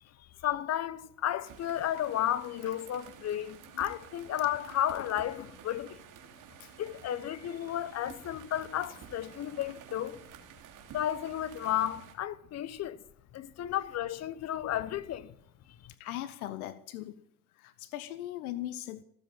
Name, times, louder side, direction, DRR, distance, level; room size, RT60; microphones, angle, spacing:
voice 1, 0.4-6.0 6.8-10.2 10.9-13.0 13.3-15.3, left 11 dB, 35° left, 1.1 m, -33 dB
sound 1, 1.4-12.1, right 8 dB, 45° right, 2.9 m, -51 dB
voice 2, 16.0-17.2 17.5-19.0, left 13 dB, 75° left, 0.9 m, -40 dB
17.0 x 7.9 x 9.1 m
hypercardioid pair, 90°, 43 cm